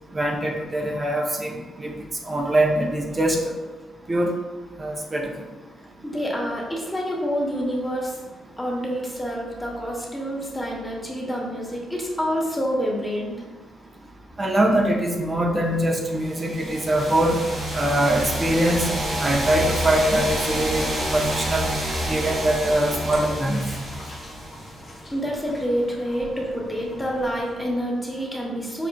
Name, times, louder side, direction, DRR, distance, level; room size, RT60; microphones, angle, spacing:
voice 1, 0.1-1.9 2.3-3.5 4.1-4.3 4.8-5.3 14.4-17.4 17.7-18.9 19.2-21.7 22.1-23.6, right 1 dB, 30° right, 0 dB, 0.5 m, -23 dB
voice 2, 6.0-8.2 8.6-13.4 25.1-28.9, equal, 10° left, -2 dB, 0.9 m, -27 dB
sound 1, 16.2-24.9, right 1 dB, 55° right, 0.8 m, -28 dB
sound 2, 17.0-27.6, left 2 dB, 40° left, 0.8 m, -39 dB
5.0 x 2.3 x 2.2 m, 1.3 s
supercardioid pair, 65°, 0 cm